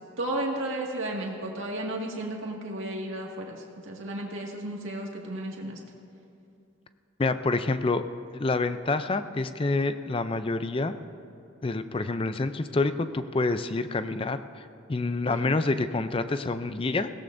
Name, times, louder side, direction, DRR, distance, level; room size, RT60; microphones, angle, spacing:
voice 1, 0.2-5.8 15.2-15.4, right 1 dB, 65° right, -1 dB, 1.9 m, -33 dB
voice 2, 7.2-8.0 8.3-10.9 11.6-17.1, left 3 dB, 25° left, 11 dB, 0.4 m, -27 dB
21.0 x 17.0 x 2.6 m, 2.6 s
head